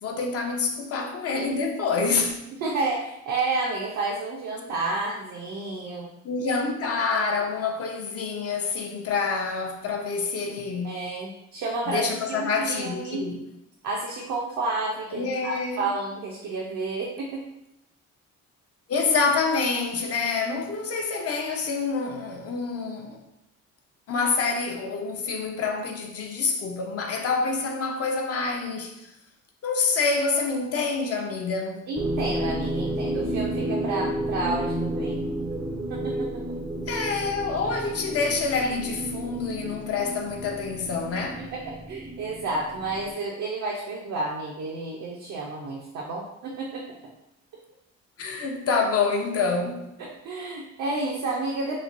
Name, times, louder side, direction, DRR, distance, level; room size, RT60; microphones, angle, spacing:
voice 1, 0.0-2.4 6.2-11.0 11.9-13.4 15.1-15.9 18.9-23.2 24.1-29.1 29.6-31.9 36.9-41.5 48.2-49.9, left 4 dB, 50° left, 0.5 m, -27 dB
voice 2, 2.6-6.1 10.8-13.3 13.8-17.4 31.9-35.2 35.9-36.6 41.5-41.6 41.9-46.8 50.0-51.8, right 3 dB, 75° right, 0.5 m, -30 dB
sound 1, 32.0-43.1, right 1 dB, 10° right, 0.3 m, -31 dB
3.1 x 2.2 x 2.5 m
cardioid pair, 90°, 30 cm